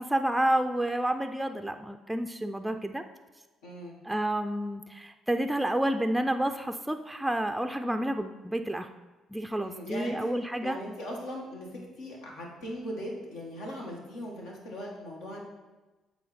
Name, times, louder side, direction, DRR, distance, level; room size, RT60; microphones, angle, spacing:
voice 1, 0.0-3.0 4.0-8.9 9.3-10.8, right 1 dB, 5° right, 7 dB, 0.4 m, -29 dB
voice 2, 3.6-4.0 9.6-10.3 10.6-15.4, equal, 80° left, -2 dB, 1.6 m, -39 dB
8.3 x 3.5 x 4.2 m, 1.2 s
hypercardioid pair, 55°, 0 cm